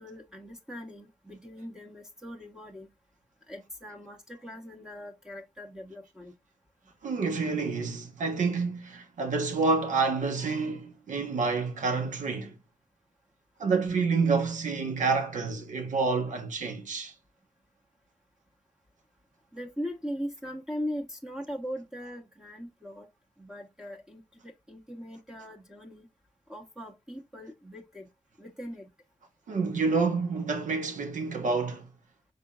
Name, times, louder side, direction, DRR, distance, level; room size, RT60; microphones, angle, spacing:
voice 1, 0.0-2.9 3.5-6.3 19.5-23.1 23.4-26.1 26.5-28.1 28.4-28.9, equal, 5° right, 1.2 m, -40 dB
voice 2, 7.0-12.5 13.6-17.1 29.5-31.9, right 4 dB, 80° right, 1.2 m, -28 dB
5.4 x 4.0 x 2.4 m
cardioid pair, 60°, 13 cm